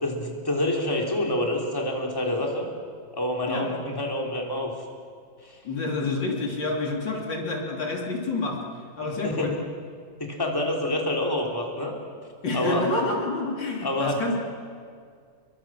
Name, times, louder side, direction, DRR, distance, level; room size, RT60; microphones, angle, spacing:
voice 1, 0.0-2.7 3.1-4.7 5.4-5.6 9.0-9.5 10.2-11.9 12.5-12.8 13.8-14.2, left 1 dB, 10° left, 0 dB, 3.2 m, -27 dB
voice 2, 5.6-8.6 9.0-9.5 12.4-14.4, left 2 dB, 70° left, 0 dB, 3.7 m, -28 dB
28.0 x 22.5 x 7.6 m, 2.1 s
omnidirectional pair, 2.1 m